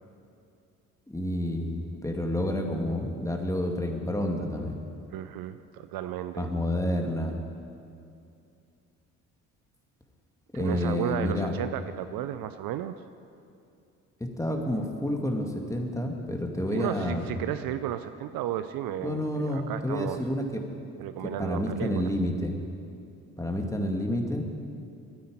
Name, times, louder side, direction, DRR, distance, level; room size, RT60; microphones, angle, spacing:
voice 1, 1.1-4.8 6.4-7.4 10.5-11.5 14.4-17.4 19.0-20.6 21.4-22.6 23.4-24.4, left 1 dB, 5° left, 3 dB, 2.2 m, -29 dB
voice 2, 5.1-6.5 10.5-12.9 16.7-20.2 21.0-22.1, right 11 dB, 55° right, 11 dB, 0.7 m, -33 dB
13.0 x 9.4 x 10.0 m, 2.6 s
hypercardioid pair, 55°, 41 cm